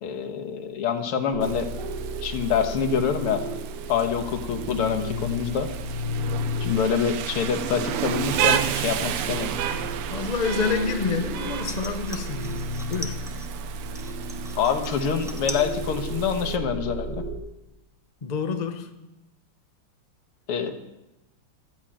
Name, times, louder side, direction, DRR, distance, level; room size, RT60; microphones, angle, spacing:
voice 1, 0.0-1.7 2.2-3.4 3.9-5.7 6.6-9.5 14.6-17.2 20.5-20.7, left 7 dB, 90° left, 2.2 m, -26 dB
sound 1, 1.3-17.4, right 1 dB, 55° right, 2.4 m, -33 dB
Rain, 1.4-16.6, right 10 dB, 85° right, 1.7 m, -33 dB
voice 2, 10.1-13.2 18.2-18.9, left 5 dB, 50° left, 0.4 m, -28 dB
sound 2, 11.7-13.5 13.9-15.7 16.0-16.6 17.0-17.1, equal, 5° right, 0.6 m, -40 dB
13.0 x 8.9 x 8.9 m
omnidirectional pair, 2.4 m